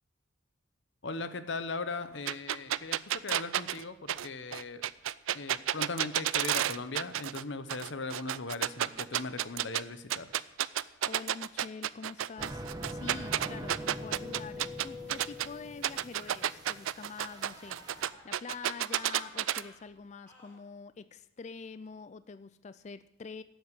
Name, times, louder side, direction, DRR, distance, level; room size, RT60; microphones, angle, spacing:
voice 1, 1.0-4.8 5.3-10.4, left 3 dB, 65° left, 12 dB, 0.9 m, -38 dB
sound 1, 2.3-7.4 7.7-9.8 10.1-15.5 15.8-19.6, right 11 dB, 85° right, 0.4 m, -31 dB
voice 2, 11.0-23.4, left 5 dB, 35° left, 14 dB, 0.4 m, -46 dB
sound 2, 12.4-18.1, equal, 20° right, 1.2 m, -43 dB
sound 3, 16.1-16.5 16.9-18.4 18.7-19.8 20.3-20.6, equal, 10° left, 3.5 m, -55 dB
12.0 x 7.9 x 8.3 m, 0.95 s
head